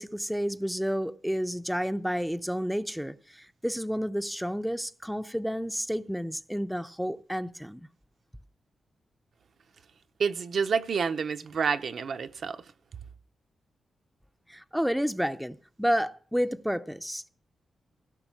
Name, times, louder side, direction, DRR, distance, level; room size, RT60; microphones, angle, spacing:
voice 1, 0.0-7.9 14.5-17.3, equal, ahead, 0.5 m, -30 dB
voice 2, 10.2-12.6, right 6 dB, 60° right, 0.6 m, -28 dB
16.5 x 6.1 x 5.9 m
cardioid pair, 105°, 0 cm